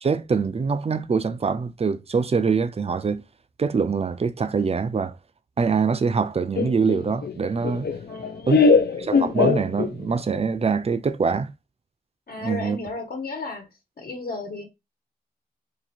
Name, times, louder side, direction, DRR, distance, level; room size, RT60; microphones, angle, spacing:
voice 1, 0.0-3.2 3.6-5.2 5.6-7.9 8.5-8.6 9.0-11.5 12.4-12.8, right 5 dB, 40° right, 0.4 m, -24 dB
Laughter, 6.5-10.2, left 5 dB, 90° left, 0.6 m, -21 dB
voice 2, 8.1-8.8 12.3-13.7 14.0-14.6, left 3 dB, 70° left, 1.3 m, -34 dB
2.9 x 2.6 x 4.2 m
wide cardioid pair, 125°, 16 cm